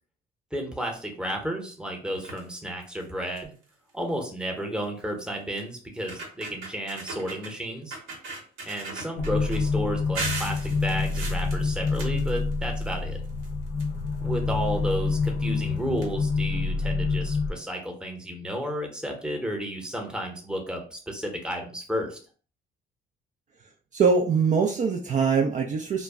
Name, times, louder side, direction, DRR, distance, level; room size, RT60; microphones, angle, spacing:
voice 1, 0.5-3.5 3.9-8.0 8.6-13.2 14.2-22.2, equal, 5° right, 2 dB, 0.8 m, -32 dB
sound 1, 2.1-2.5 3.0-3.1 3.4-3.6 4.8-4.9 5.6-5.7 6.0-7.5 7.9-9.6 10.2-12.9 13.2-14.3 15.2-15.3 15.6-15.7 16.0-16.1, right 3 dB, 85° right, 0.9 m, -37 dB
sound 2, 9.2-17.5, left 4 dB, 50° left, 0.6 m, -27 dB
voice 2, 23.9-26.0, right 5 dB, 40° right, 1 dB, 0.4 m, -23 dB
2.2 x 2.0 x 3.4 m, 0.41 s
supercardioid pair, 75°, 20 cm